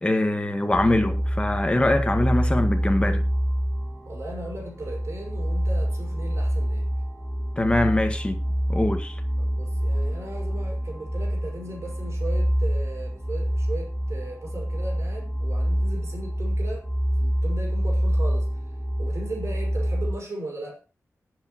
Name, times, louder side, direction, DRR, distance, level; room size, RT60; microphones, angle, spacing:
voice 1, 0.0-3.3 7.6-8.4 8.7-9.1, left 1 dB, 20° left, 1.8 m, -23 dB
sound 1, 0.7-20.1, equal, 5° left, 2.1 m, -26 dB
voice 2, 4.1-6.9 9.4-16.9 17.2-18.6 19.0-20.8, right 1 dB, 60° right, 5.6 m, -37 dB
19.5 x 8.1 x 3.1 m
wide cardioid pair, 115°, 6 cm